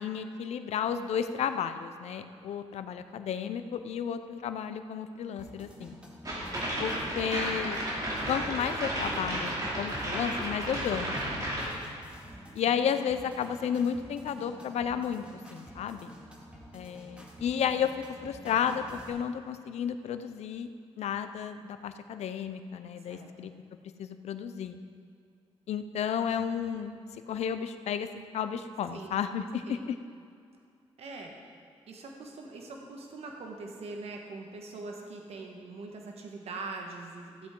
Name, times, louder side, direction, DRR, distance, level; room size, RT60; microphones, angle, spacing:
voice 1, 0.0-6.0 6.8-7.8 8.3-11.2 12.5-15.2 15.5-16.1 16.7-17.9 18.2-20.7 21.0-23.5 23.8-24.8 25.7-28.1 28.3-30.0, left 8 dB, 75° left, 10 dB, 0.6 m, -32 dB
sound 1, 5.4-19.1, equal, 10° right, 2.2 m, -50 dB
sound 2, 6.2-11.7, right 1 dB, 35° right, 2.9 m, -33 dB
voice 2, 23.0-23.5 28.9-29.2 29.7-29.9 31.0-31.3 31.9-37.5, right 3 dB, 70° right, 1 dB, 1.4 m, -42 dB
15.0 x 8.4 x 3.8 m, 2.3 s
cardioid pair, 80°, 11 cm